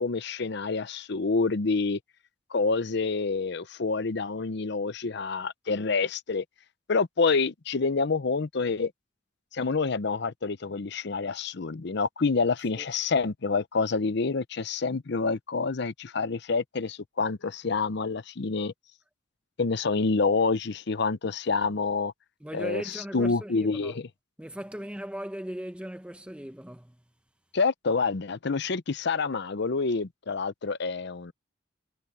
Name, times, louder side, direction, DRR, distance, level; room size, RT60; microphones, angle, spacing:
voice 1, 0.0-2.0 2.5-6.4 6.9-8.9 9.5-18.7 19.6-22.1 22.5-24.1 27.5-31.3, left 4 dB, 60° left, 0.7 m, -27 dB
voice 2, 22.4-23.9 24.4-27.0, equal, 5° right, 0.8 m, -38 dB
head